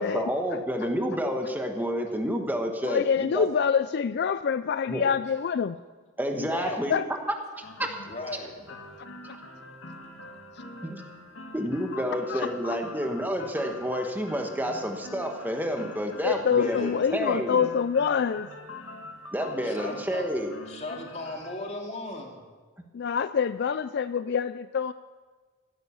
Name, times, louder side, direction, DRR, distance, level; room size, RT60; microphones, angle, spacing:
voice 1, 0.0-3.5 4.9-5.1 6.2-7.0 7.6-7.9 10.8-11.0 11.5-17.6 19.3-20.5, equal, 10° right, 4 dB, 1.3 m, -29 dB
voice 2, 2.8-5.7 6.4-6.5 6.9-7.0 12.3-12.4 16.2-18.5 22.9-24.9, left 6 dB, 55° left, 13 dB, 0.4 m, -26 dB
voice 3, 6.5-6.9 8.1-8.7 16.6-17.0 19.6-20.3 20.7-22.4, left 2 dB, 35° left, 1 dB, 2.5 m, -37 dB
sound 1, 7.6-21.5, left 2 dB, 80° left, 1.9 m, -44 dB
15.5 x 11.5 x 7.1 m, 1.4 s
head